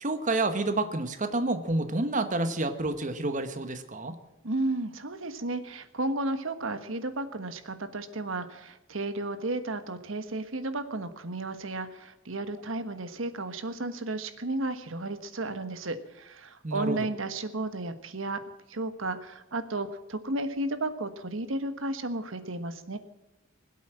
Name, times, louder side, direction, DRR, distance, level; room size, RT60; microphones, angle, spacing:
voice 1, 0.0-4.2 16.6-17.0, right 2 dB, 40° right, 8 dB, 1.2 m, -29 dB
voice 2, 4.4-18.4 18.7-23.0, right 2 dB, 70° right, 10 dB, 1.4 m, -33 dB
21.0 x 8.4 x 7.5 m, 0.97 s
head